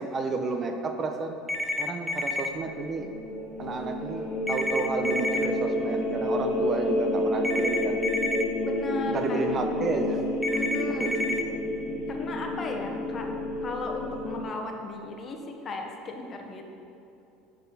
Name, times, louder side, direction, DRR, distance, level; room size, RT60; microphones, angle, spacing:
voice 1, 0.0-1.4 1.8-3.1 3.6-8.0 9.1-10.2 11.0-11.6, right 3 dB, 35° right, 5 dB, 0.7 m, -31 dB
Phone Old Landline Ringing, 1.5-2.5 4.5-5.5 7.4-8.4 10.4-11.4, left 2 dB, 5° left, 0.6 m, -30 dB
sound 1, 2.5-14.4, left 1 dB, 85° left, 1.5 m, -30 dB
voice 2, 8.6-9.4 10.5-11.1 12.1-16.6, left 2 dB, 35° left, 3 dB, 1.0 m, -36 dB
11.5 x 4.0 x 4.1 m, 2.8 s
supercardioid pair, 95°, 0 cm